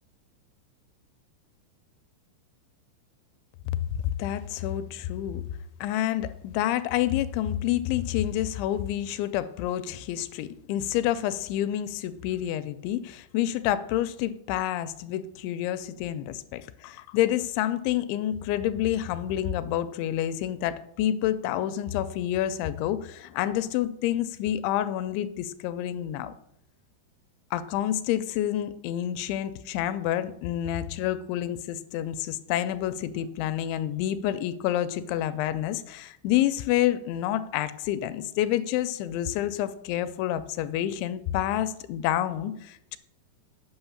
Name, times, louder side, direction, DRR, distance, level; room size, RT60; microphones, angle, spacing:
voice 1, 3.9-5.4 5.8-26.3 27.5-43.0, left 12 dB, 85° left, 13 dB, 2.7 m, -28 dB
8.8 x 5.8 x 7.1 m, 0.76 s
omnidirectional pair, 5.4 m